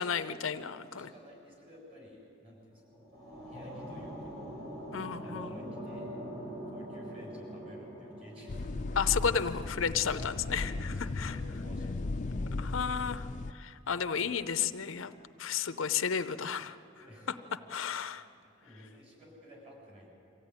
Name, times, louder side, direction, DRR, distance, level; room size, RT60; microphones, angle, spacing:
voice 1, 0.0-1.1 4.9-5.5 8.9-11.4 12.6-13.3 13.5-15.1 15.4-16.8 17.7-18.2, left 7 dB, 75° left, 11 dB, 0.6 m, -32 dB
voice 2, 0.8-2.8 3.5-4.4 5.2-6.1 6.7-9.1 10.7-12.7 14.2-14.3 17.0-17.4 18.4-20.1, equal, 30° right, -2 dB, 7.0 m, -53 dB
sound 1, 2.7-9.9, equal, 55° right, 6.4 m, -44 dB
sound 2, 8.5-13.5, left 2 dB, 35° left, 0.5 m, -36 dB
24.0 x 15.5 x 9.7 m, 2.6 s
head